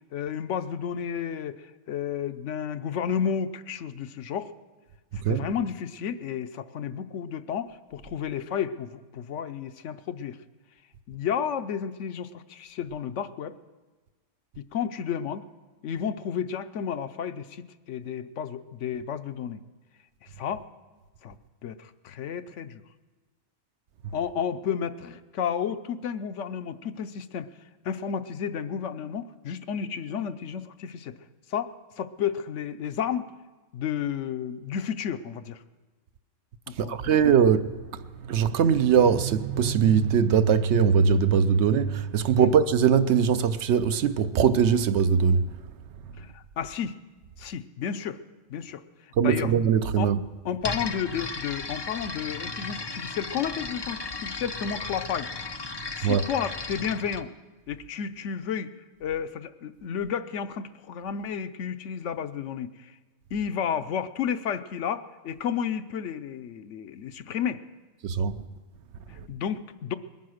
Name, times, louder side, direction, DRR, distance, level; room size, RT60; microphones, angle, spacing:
voice 1, 0.1-4.5 5.3-10.4 11.1-13.6 14.6-15.4 15.8-19.6 20.2-20.6 21.2-21.4 21.6-22.8 24.1-27.5 27.8-31.2 31.5-33.3 33.7-35.6 36.7-37.0 42.4-42.5 46.2-46.9 47.4-48.2 48.5-48.8 49.2-49.5 50.0-50.1 50.4-55.3 56.0-57.3 57.7-58.7 59.0-62.9 63.3-67.6 69.1-70.0, left 8 dB, 75° left, 1.0 m, -32 dB
voice 2, 36.8-45.4 49.2-50.2 56.0-56.2 68.0-68.4, right 7 dB, 70° right, 0.9 m, -21 dB
sound 1, 50.6-57.2, left 3 dB, 35° left, 0.4 m, -35 dB
21.0 x 9.5 x 6.4 m
omnidirectional pair, 1.3 m